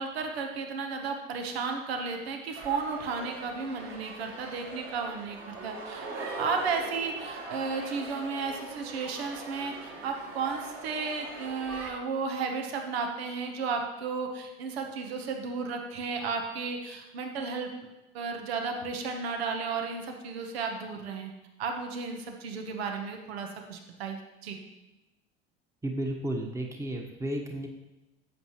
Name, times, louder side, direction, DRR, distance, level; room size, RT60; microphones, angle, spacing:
voice 1, 0.0-17.7 18.1-21.3 21.6-24.6, right 5 dB, 80° right, 4 dB, 1.2 m, -33 dB
sound 1, 2.6-11.9, right 2 dB, 45° right, 2.4 m, -41 dB
voice 2, 25.8-27.7, right 1 dB, 10° right, 2 dB, 1.2 m, -33 dB
11.0 x 7.8 x 3.1 m, 1.0 s
hypercardioid pair, 80°, 31 cm